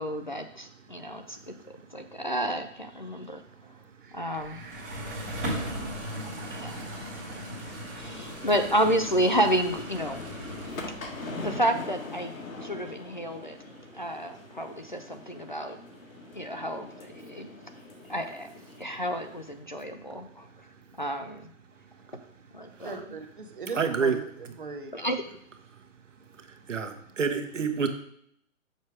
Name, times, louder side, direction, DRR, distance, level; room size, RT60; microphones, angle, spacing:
voice 1, 0.0-1.4 1.9-3.4 4.1-4.6 6.5-7.1 7.9-10.2 11.4-12.3 12.6-13.6 13.9-15.8 16.3-17.6 18.1-18.5 18.8-20.5 21.0-21.4 22.5-23.0 24.9-25.2, equal, 35° left, 6 dB, 0.5 m, -30 dB
voice 2, 4.0-5.8 22.8-24.2 24.6-24.9, right 4 dB, 40° right, 5 dB, 1.1 m, -40 dB
sound 1, 4.4-11.4, equal, 10° right, 0.9 m, -38 dB
sound 2, 6.1-19.6, left 3 dB, 80° left, 1.8 m, -43 dB
voice 3, 23.7-24.2 26.7-27.9, right 5 dB, 65° right, 7 dB, 1.3 m, -27 dB
6.5 x 5.8 x 4.8 m, 0.71 s
hypercardioid pair, 175°, 41 cm